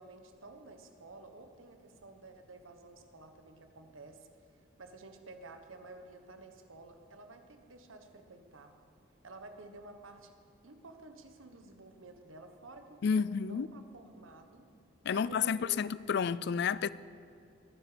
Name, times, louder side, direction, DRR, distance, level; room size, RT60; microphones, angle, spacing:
voice 1, 0.0-8.7 9.2-10.3 10.6-14.6 15.1-15.9, right 3 dB, 90° right, 1.3 m, -52 dB
voice 2, 13.0-13.7 15.0-16.9, left 6 dB, 60° left, 0.4 m, -30 dB
21.5 x 9.8 x 5.1 m
head